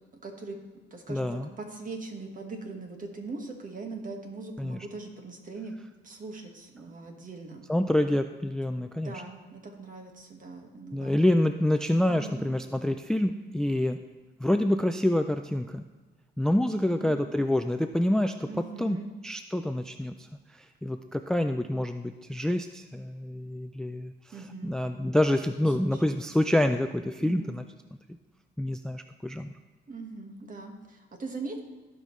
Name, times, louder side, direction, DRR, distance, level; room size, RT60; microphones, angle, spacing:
voice 1, 0.2-0.6 0.9-1.3 1.6-5.7 6.0-7.6 8.8-11.2 12.1-12.4 16.9-17.1 18.5-19.1 24.3-24.8 25.8-26.0 26.4-26.6 27.2-27.5 29.9-31.6, right 3 dB, 40° right, 3 dB, 1.7 m, -41 dB
voice 2, 1.1-1.5 4.6-4.9 7.7-9.2 10.9-14.0 14.4-15.8 16.4-27.6 28.6-29.5, left 1 dB, 5° left, 8 dB, 0.3 m, -27 dB
15.5 x 5.3 x 3.2 m, 1.3 s
cardioid pair, 90°, 20 cm